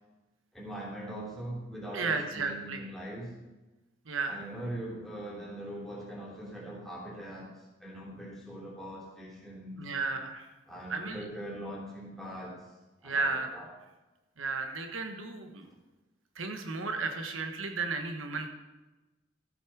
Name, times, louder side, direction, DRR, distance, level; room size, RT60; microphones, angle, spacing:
voice 1, 0.5-3.3 4.3-7.5 7.8-9.8 10.7-12.6 13.0-13.7, right 1 dB, ahead, -6 dB, 3.2 m, -41 dB
voice 2, 1.9-2.8 4.1-4.4 9.8-10.5 10.9-11.2 13.0-13.5 14.4-15.7 16.4-18.5, right 4 dB, 90° right, 5 dB, 1.2 m, -33 dB
14.0 x 8.3 x 4.7 m, 1.1 s
head